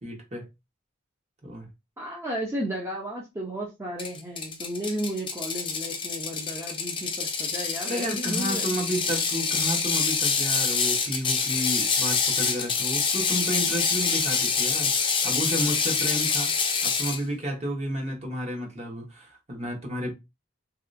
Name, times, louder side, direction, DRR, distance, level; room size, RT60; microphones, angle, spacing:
voice 1, 0.0-0.4 1.4-1.7 7.8-20.1, equal, 35° right, 1.2 m, -32 dB
voice 2, 2.0-8.7, equal, 15° right, 0.7 m, -34 dB
Ratchet pawl, 4.0-17.2, left 5 dB, 25° left, 0.5 m, -26 dB
3.1 x 2.7 x 2.6 m
head